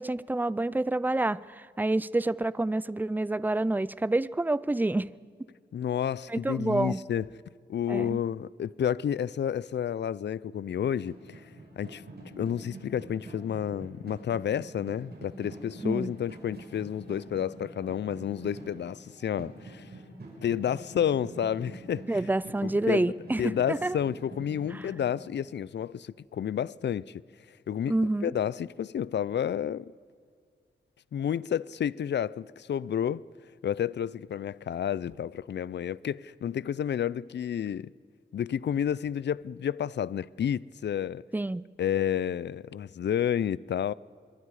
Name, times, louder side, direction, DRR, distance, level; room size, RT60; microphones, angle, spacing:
voice 1, 0.0-5.1 6.3-7.0 7.9-8.2 15.8-16.1 22.1-24.0 27.9-28.3 41.3-41.6, right 2 dB, 10° right, 0.4 m, -28 dB
voice 2, 5.7-7.3 7.7-11.4 11.8-12.0 12.4-19.9 20.4-22.2 22.6-23.1 23.4-27.2 27.7-27.9 28.2-29.9 31.1-33.2 33.6-37.9 38.3-41.2 41.8-43.9, left 9 dB, 75° left, 0.4 m, -30 dB
sound 1, 10.5-25.1, right 2 dB, 65° right, 5.4 m, -46 dB
26.0 x 23.0 x 4.8 m
wide cardioid pair, 95°, 18 cm